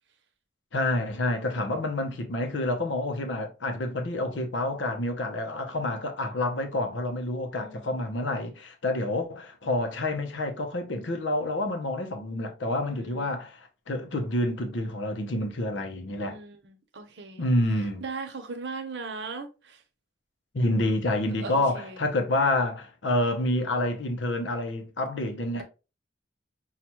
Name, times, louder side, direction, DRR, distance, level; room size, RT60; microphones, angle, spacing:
voice 1, 0.7-16.4 17.4-18.0 20.5-25.6, left 1 dB, 80° left, 0.7 m, -28 dB
voice 2, 1.4-1.8 7.5-7.9 12.9-13.4 16.2-17.4 18.0-19.8 21.4-22.1 25.5-25.6, right 4 dB, 65° right, 0.8 m, -39 dB
5.6 x 2.4 x 3.0 m
head